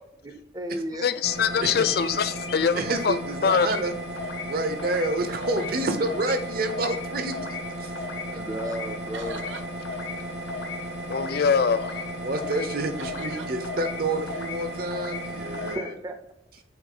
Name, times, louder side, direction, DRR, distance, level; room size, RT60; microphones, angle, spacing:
voice 1, 0.2-1.1 6.1-6.2 8.3-9.6 15.7-16.2, right 1 dB, 20° right, 7 dB, 0.6 m, -34 dB
voice 2, 1.0-2.8 3.0-3.1 3.4-3.7 11.1-11.9, left 6 dB, 55° left, 13 dB, 0.4 m, -23 dB
sound 1, 1.2-15.8, right 1 dB, 70° right, 1.5 m, -35 dB
voice 3, 1.5-1.8 2.7-4.0 4.5-7.9 12.2-15.9, right 2 dB, 55° right, 7 dB, 0.8 m, -29 dB
sound 2, 1.8-2.1 2.4-3.2 3.4-3.9 4.2-4.5 4.8-5.1 5.4-5.8 6.1-6.4 6.7-7.0 7.3-7.7 8.0-8.3 8.6-8.9 9.2-9.6 9.9-10.2 10.5-10.8 11.1-11.5 11.7-12.1 12.4-12.7 13.0-13.4 13.6-14.0 14.3-14.6 14.9-15.3 15.5-15.9, left 5 dB, 85° left, 0.9 m, -37 dB
sound 3, 5.1-6.9 7.6-8.0 9.1-9.7 13.0-13.5, right 4 dB, 85° right, 0.5 m, -43 dB
8.0 x 3.6 x 3.8 m, 0.82 s
head